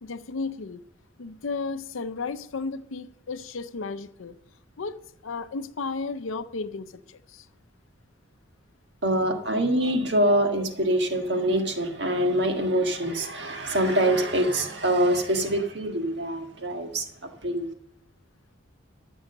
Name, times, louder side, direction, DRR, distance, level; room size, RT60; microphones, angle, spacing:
voice 1, 0.0-0.8 1.2-4.4 4.8-7.5, left 4 dB, 90° left, 0.6 m, -34 dB
voice 2, 9.0-17.1 17.4-17.7, right 1 dB, 60° right, 1.6 m, -24 dB
13.5 x 6.3 x 6.6 m
head